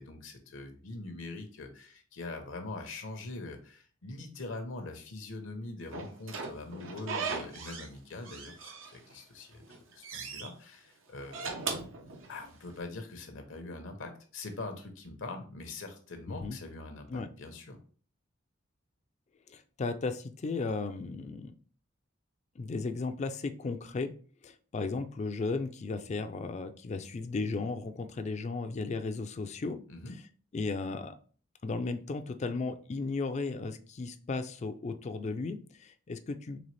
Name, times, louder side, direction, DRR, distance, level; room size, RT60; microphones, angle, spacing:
voice 1, 0.0-9.6 9.9-11.5 12.3-17.8 29.9-30.1, left 2 dB, 75° left, 6 dB, 0.8 m, -43 dB
Slam / Squeak, 5.9-7.9 8.2-9.2 9.6-10.5 11.2-12.7, right 4 dB, 75° right, 0.7 m, -38 dB
voice 2, 16.3-16.6 17.1-17.3 19.5-21.5 22.6-24.1 24.4-29.8 30.5-31.2 31.6-36.6, left 3 dB, 35° left, 9 dB, 0.4 m, -35 dB
4.0 x 3.3 x 3.2 m, 0.42 s
head